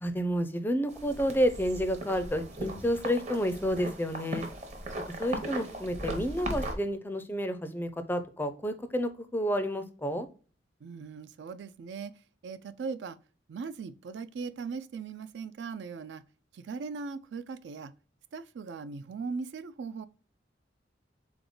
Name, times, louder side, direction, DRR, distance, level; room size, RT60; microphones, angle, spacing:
voice 1, 0.0-4.5 5.2-10.3, equal, 10° left, 0.4 m, -30 dB
sound 1, 0.9-6.7, right 1 dB, 40° right, 0.8 m, -38 dB
voice 2, 10.8-13.2 13.5-16.2 16.5-17.9 18.3-20.1, right 5 dB, 70° right, 0.4 m, -39 dB
3.8 x 3.5 x 3.7 m
head